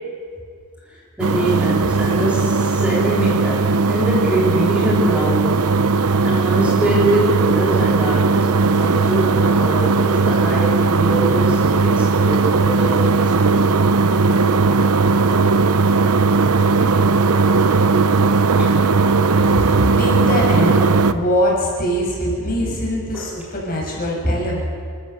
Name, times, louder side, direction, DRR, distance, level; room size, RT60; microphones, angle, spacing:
voice 1, 0.9-5.7 6.2-13.8 18.6-18.8 19.6-20.0 22.5-22.8 23.1-23.3 24.2-24.4, right 1 dB, 5° right, -5 dB, 3.8 m, -24 dB
sound 1, 1.2-21.1, right 4 dB, 80° right, 0.8 m, -17 dB
voice 2, 19.5-24.6, equal, 40° left, -2 dB, 6.6 m, -23 dB
29.5 x 13.5 x 6.9 m, 2.1 s
head